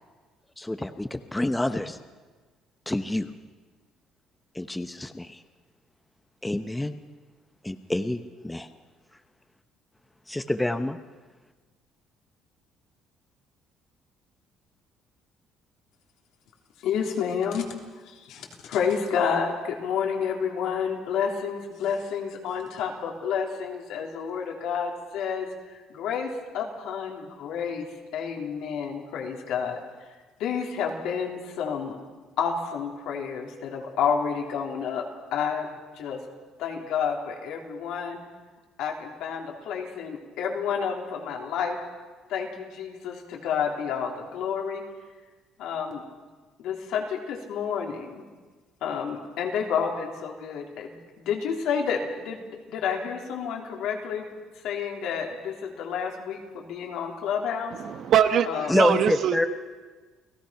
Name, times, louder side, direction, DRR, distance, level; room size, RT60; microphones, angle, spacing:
voice 1, 0.6-2.0 2.9-3.3 4.5-5.4 6.4-6.9 7.6-8.7 10.3-11.0 58.7-59.5, left 1 dB, 10° left, 9 dB, 0.9 m, -27 dB
voice 2, 16.8-17.7 18.1-25.5 25.9-27.9 28.1-30.1 30.4-32.0 32.4-35.0 35.3-36.2 36.6-38.2 38.8-41.8 42.3-44.8 45.6-46.0 46.6-48.2 48.8-54.3 54.6-57.7 58.5-58.7, left 7 dB, 75° left, 1 dB, 3.6 m, -30 dB
voice 3, 57.7-59.3, right 9 dB, 60° right, 9 dB, 1.5 m, -23 dB
29.5 x 17.5 x 5.9 m, 1.4 s
cardioid pair, 110°, 0 cm